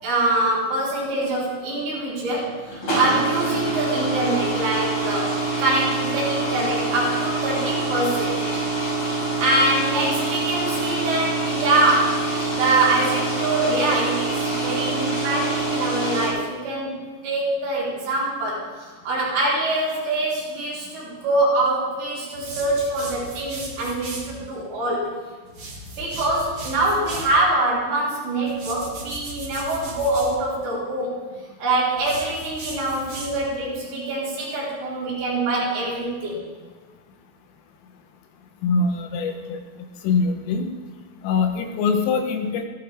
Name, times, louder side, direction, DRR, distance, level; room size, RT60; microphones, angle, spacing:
voice 1, 0.0-5.3 5.6-8.4 9.4-25.1 26.0-31.2 31.6-36.4, right 2 dB, 70° right, -7 dB, 6.9 m, -24 dB
sound 1, 2.6-16.3, right 3 dB, 25° left, 6.8 m, -25 dB
sound 2, 22.3-24.3 25.5-27.4 28.5-30.3 32.0-33.6, right 2 dB, 40° right, 1.9 m, -37 dB
voice 2, 38.6-39.6 40.0-40.7 41.2-42.7, left 4 dB, 80° left, 5 dB, 3.8 m, -23 dB
17.5 x 16.0 x 3.6 m, 1.4 s
omnidirectional pair, 5.8 m